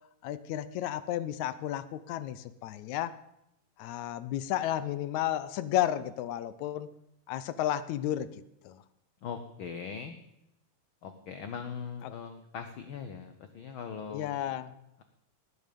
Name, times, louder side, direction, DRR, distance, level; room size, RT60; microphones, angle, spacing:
voice 1, 0.2-3.2 3.8-6.9 7.3-8.8 14.1-14.8, left 12 dB, 80° left, 14 dB, 2.0 m, -32 dB
voice 2, 9.2-10.1 11.0-14.6, left 6 dB, 60° left, 8 dB, 1.4 m, -40 dB
19.0 x 9.4 x 5.2 m, 0.82 s
omnidirectional pair, 3.3 m